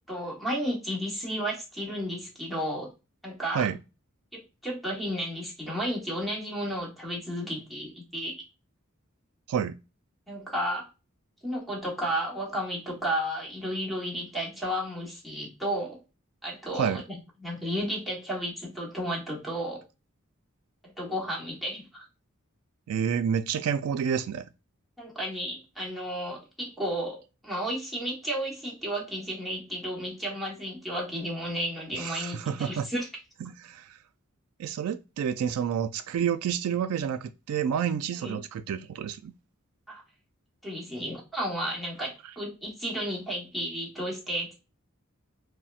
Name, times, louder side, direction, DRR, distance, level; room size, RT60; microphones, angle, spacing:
voice 1, 0.1-2.9 3.2-3.7 4.3-8.3 10.3-10.9 11.4-16.0 16.4-19.8 20.8-22.0 25.0-33.1 38.2-38.4 39.9-40.0 40.6-44.5, equal, ahead, 1.0 m, -33 dB
voice 2, 22.9-24.5 32.0-32.9 33.4-33.9 34.6-39.3, right 8 dB, 90° right, 0.3 m, -29 dB
4.1 x 2.1 x 2.4 m
head